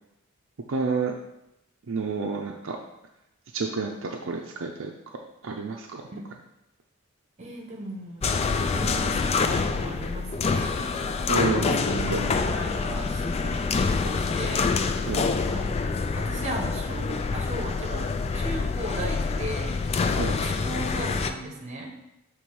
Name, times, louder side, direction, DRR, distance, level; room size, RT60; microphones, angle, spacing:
voice 1, 0.7-1.1 1.9-2.8 3.5-4.9 5.4-6.0 11.3-12.2 15.1-15.2 20.2-20.3, right 4 dB, 65° right, 1 dB, 0.5 m, -29 dB
voice 2, 7.4-10.8 11.6-14.7 15.4-19.7 20.2-21.9, right 1 dB, 35° right, 1 dB, 1.1 m, -37 dB
sound 1, 8.2-21.3, left 4 dB, 30° left, 0.3 m, -26 dB
6.9 x 3.3 x 4.7 m, 0.90 s
head